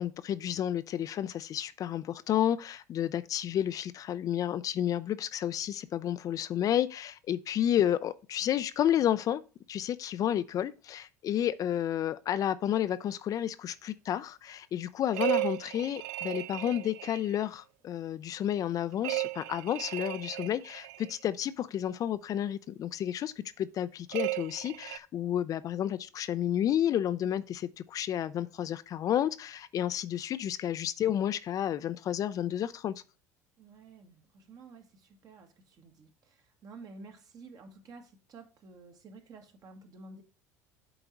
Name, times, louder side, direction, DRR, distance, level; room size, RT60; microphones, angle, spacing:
voice 1, 0.0-9.4 9.7-32.9, left 10 dB, 45° left, 0.4 m, -31 dB
sound 1, 15.1-17.4 19.0-21.1 24.1-25.0, right 21 dB, 70° right, 0.3 m, -35 dB
voice 2, 33.6-40.2, right 3 dB, 45° right, 1.6 m, -51 dB
7.9 x 3.9 x 4.6 m
hypercardioid pair, 70°, 8 cm